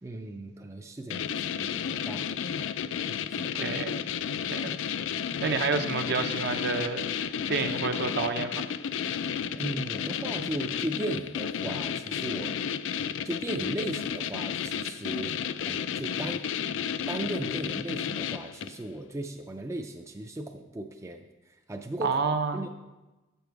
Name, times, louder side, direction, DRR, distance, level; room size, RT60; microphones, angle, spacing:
voice 1, 0.0-2.7 3.3-3.7 4.2-4.6 5.3-5.5 9.5-12.6 13.2-16.4 17.1-22.2 22.5-22.7, right 1 dB, 15° right, 4 dB, 0.4 m, -37 dB
sound 1, 1.1-18.8, left 8 dB, 75° left, 0.3 m, -32 dB
voice 2, 3.6-4.0 4.5-4.7 5.1-8.7 22.0-22.6, right 4 dB, 60° right, 6 dB, 0.7 m, -29 dB
8.2 x 6.9 x 4.6 m, 1.1 s
head